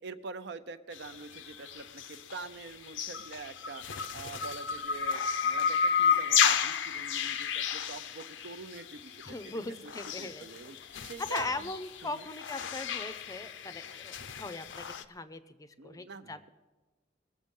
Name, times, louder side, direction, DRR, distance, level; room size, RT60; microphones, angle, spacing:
voice 1, 0.0-3.8 4.1-9.5 9.8-9.9 10.2-11.7 12.0-12.3 15.8-16.5, right 4 dB, 65° right, 11 dB, 0.6 m, -45 dB
sound 1, 0.9-15.0, left 7 dB, 75° left, 0.5 m, -32 dB
voice 2, 9.3-10.5 11.3-16.4, left 3 dB, 20° left, 12 dB, 0.5 m, -39 dB
21.0 x 7.4 x 5.3 m, 1.2 s
head